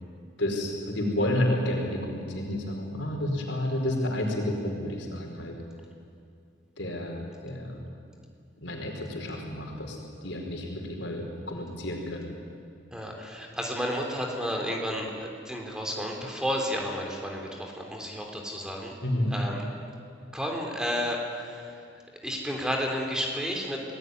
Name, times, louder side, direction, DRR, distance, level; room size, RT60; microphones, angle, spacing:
voice 1, 0.4-5.5 6.8-7.8 8.6-10.0 10.2-12.3 19.0-19.3, left 1 dB, 70° left, 1 dB, 4.7 m, -30 dB
voice 2, 12.9-19.0 19.3-19.6 20.3-21.8 22.2-23.8, equal, 5° right, 1 dB, 3.6 m, -32 dB
27.5 x 19.0 x 9.5 m, 2.4 s
head